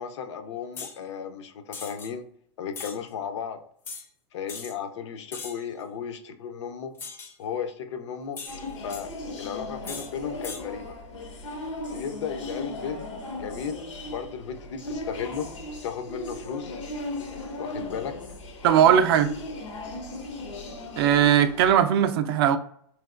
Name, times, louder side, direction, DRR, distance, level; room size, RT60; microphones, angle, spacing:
voice 1, 0.0-2.2 2.6-3.6 4.3-6.9 7.4-8.4 8.8-9.1 9.4-11.0 11.9-13.1 13.4-13.8 14.1-15.5 15.8-16.8 17.6-18.2 19.8-20.0, left 7 dB, 70° left, 0.5 m, -35 dB
sound 1, 0.8-1.0 1.7-2.1 2.7-3.0 3.9-4.1 4.5-4.7 5.3-5.7 7.0-7.4 8.4-9.0 9.8-10.1 10.4-10.6, left 4 dB, 15° left, 0.4 m, -39 dB
sound 2, 8.5-21.7, left 2 dB, 85° left, 0.9 m, -37 dB
voice 2, 18.6-19.3 21.0-22.6, right 9 dB, 55° right, 0.4 m, -19 dB
3.2 x 3.0 x 2.4 m
supercardioid pair, 155°, 15 cm